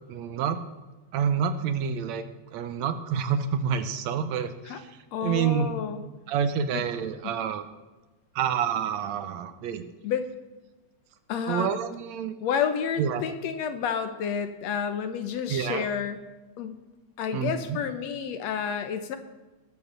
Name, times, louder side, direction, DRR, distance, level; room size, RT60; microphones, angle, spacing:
voice 1, 0.1-0.6 1.1-2.2 2.5-4.9 5.2-5.7 6.3-7.6 8.4-9.8 11.5-12.4 13.0-13.2 15.5-15.9 17.3-17.8, right 7 dB, 75° right, 10 dB, 2.0 m, -28 dB
voice 2, 5.1-6.0 6.7-6.8 7.2-7.3 10.0-10.3 11.3-11.7 12.4-16.2 16.6-16.8 17.2-19.2, left 7 dB, 70° left, 9 dB, 2.0 m, -30 dB
20.5 x 7.0 x 6.7 m, 1.2 s
omnidirectional pair, 3.3 m